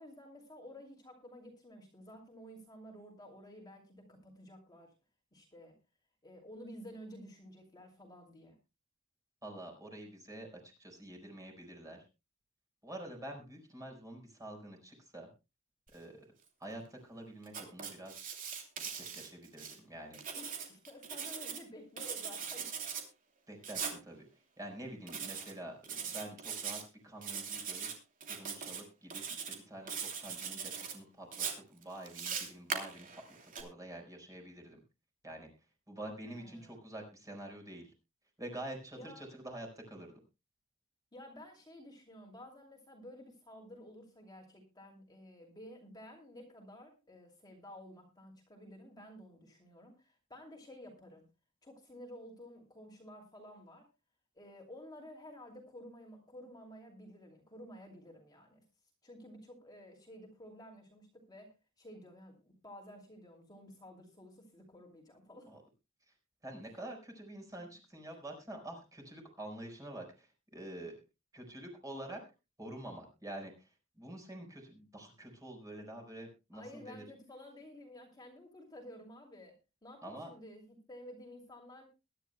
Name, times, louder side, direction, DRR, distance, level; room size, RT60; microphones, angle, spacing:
voice 1, 0.0-4.9 5.3-5.8 6.2-8.6 20.3-22.7 36.3-36.8 39.0-39.4 41.1-51.3 51.6-53.9 54.3-58.6 59.0-65.5 76.5-79.6 79.8-81.9, equal, 20° left, 1 dB, 2.7 m, -52 dB
voice 2, 9.4-12.0 12.8-15.3 15.9-16.3 16.6-18.4 18.9-20.2 23.5-24.3 24.6-27.9 28.3-34.8 35.2-35.5 35.9-37.9 38.4-40.2 65.5-65.6 66.1-66.2 66.4-71.0 71.3-72.2 72.6-77.0 80.0-80.3, right 1 dB, 15° right, 2 dB, 4.6 m, -47 dB
Writing, 17.5-19.8 20.1-21.6 22.0-23.0 23.6-24.0 25.1-25.5 25.8-26.8 27.2-27.9 28.2-28.8 29.1-29.6 29.9-30.9 31.3-33.6, right 6 dB, 40° right, 2.8 m, -40 dB
22.0 x 11.0 x 2.2 m, 0.27 s
head